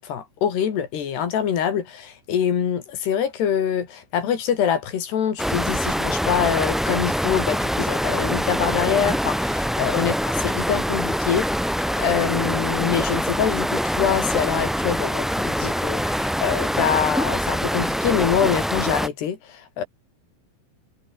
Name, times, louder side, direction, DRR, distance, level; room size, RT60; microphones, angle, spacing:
voice 1, 0.0-11.5 12.0-19.9, left 8 dB, 70° left, 5.1 m, -25 dB
sound 1, 5.4-19.1, equal, ahead, 0.4 m, -24 dB
omnidirectional pair, 4.9 m